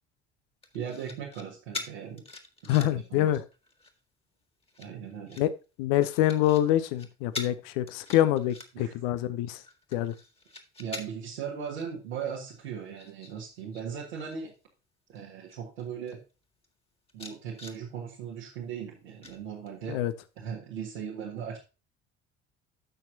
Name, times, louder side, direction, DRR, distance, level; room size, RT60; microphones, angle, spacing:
sound 1, 0.6-1.4 1.7-3.1 3.5-4.0 4.6-5.4 6.0-6.6 6.9-7.1 7.3-7.5 7.9-9.0 9.4-11.3 11.8-11.9 12.3-13.8 14.1-14.5 15.2-15.3 15.5-16.2 16.6-16.7 17.1-17.8 19.2-19.9 20.4-20.5, left 3 dB, 15° left, 1.9 m, -43 dB
voice 1, 0.7-2.2 2.6-3.4 4.8-5.4 8.7-9.0 10.8-14.5 15.1-16.2 17.1-20.0 20.4-21.6, right 7 dB, 70° right, 1.9 m, -38 dB
voice 2, 2.7-3.4 5.4-5.5 5.8-9.6 9.9-10.1 19.9-20.1, left 13 dB, 60° left, 0.7 m, -25 dB
14.5 x 6.0 x 2.8 m
figure-of-eight pair, 55°, 34 cm